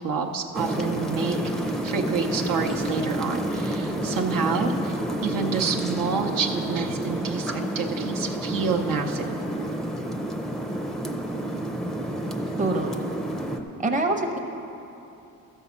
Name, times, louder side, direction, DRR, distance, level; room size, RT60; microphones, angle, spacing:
voice 1, 0.0-1.4 1.8-9.3, right 5 dB, 70° right, 2 dB, 0.8 m, -28 dB
sound 1, 0.5-13.6, right 1 dB, ahead, 0.5 m, -29 dB
voice 2, 12.6-13.0 13.8-14.4, right 2 dB, 20° right, 2 dB, 0.8 m, -25 dB
13.5 x 5.5 x 7.1 m, 2.9 s
cardioid pair, 130°, 35 cm